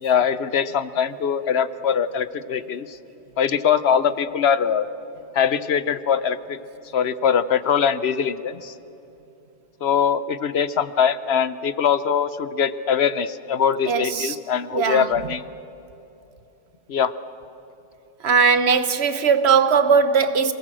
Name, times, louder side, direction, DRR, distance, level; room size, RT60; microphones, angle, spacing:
voice 1, 0.0-3.0 3.4-4.9 5.3-6.6 6.9-8.7 9.8-15.4 16.9-17.1, left 7 dB, 65° left, 1.0 m, -22 dB
voice 2, 13.9-14.4 14.7-15.1 18.2-20.5, right 6 dB, 65° right, 1.2 m, -19 dB
27.0 x 18.5 x 7.6 m
omnidirectional pair, 1.2 m